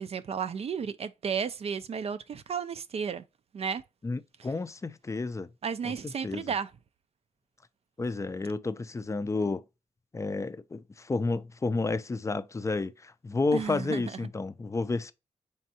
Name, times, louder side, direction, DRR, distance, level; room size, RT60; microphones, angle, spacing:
voice 1, 0.0-3.2 3.5-3.8 5.6-6.7 13.5-14.1, right 6 dB, 55° right, 0.4 m, -33 dB
voice 2, 4.0-5.5 5.8-6.4 8.0-9.6 10.1-15.1, left 3 dB, 25° left, 0.4 m, -31 dB
4.2 x 3.5 x 2.7 m
cardioid pair, 70°, 13 cm